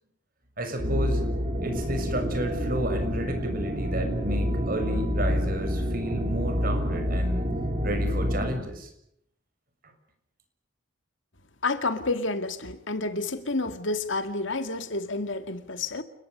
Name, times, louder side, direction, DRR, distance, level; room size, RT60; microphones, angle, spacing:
voice 1, 0.6-1.2 1.6-7.5 7.8-8.9, right 1 dB, 45° right, 6.8 m, -32 dB
sound 1, 0.8-8.5, equal, 30° right, 6.3 m, -28 dB
voice 2, 11.6-16.0, left 3 dB, 65° left, 2.2 m, -29 dB
29.5 x 21.0 x 6.8 m
head